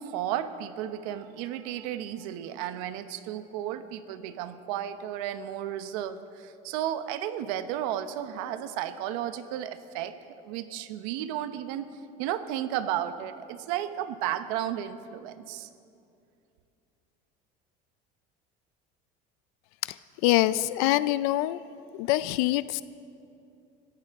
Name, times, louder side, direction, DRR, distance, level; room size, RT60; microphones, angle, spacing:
voice 1, 0.0-10.1 10.4-11.8 12.2-15.7, right 11 dB, 85° right, 11 dB, 0.9 m, -33 dB
voice 2, 20.2-21.6 22.0-22.8, left 16 dB, 90° left, 16 dB, 0.5 m, -24 dB
24.5 x 15.0 x 3.6 m, 2.6 s
cardioid pair, 180°, 18 cm